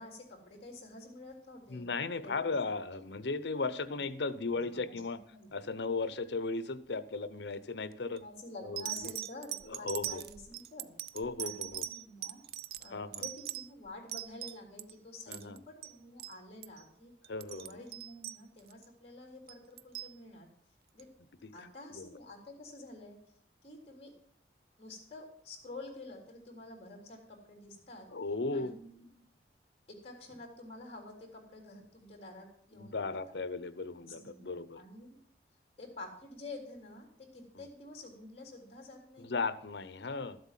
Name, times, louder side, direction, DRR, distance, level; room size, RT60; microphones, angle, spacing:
voice 1, 0.0-1.9 2.2-2.7 4.2-5.5 8.1-11.0 11.4-12.4 12.8-17.1 17.5-20.5 20.9-21.1 21.5-23.2 23.6-24.1 24.8-28.1 28.5-29.2 29.9-33.4 34.0-35.2 35.8-39.3, left 2 dB, 35° left, 1 dB, 3.7 m, -49 dB
voice 2, 1.7-5.2 5.5-8.2 8.6-8.8 9.7-10.2 11.1-11.8 12.9-13.2 15.3-15.6 17.3-17.8 21.9-22.1 28.1-28.8 32.7-34.8 39.2-40.4, left 3 dB, 75° left, 15 dB, 0.8 m, -36 dB
sound 1, 7.9-8.2 8.8-14.9 15.2-15.6 15.8-15.9 16.2-16.4 16.6-16.8 17.2-18.9 19.5-20.1 21.0-21.1, right 13 dB, 60° right, 0.5 m, -41 dB
13.0 x 7.9 x 7.4 m, 0.63 s
head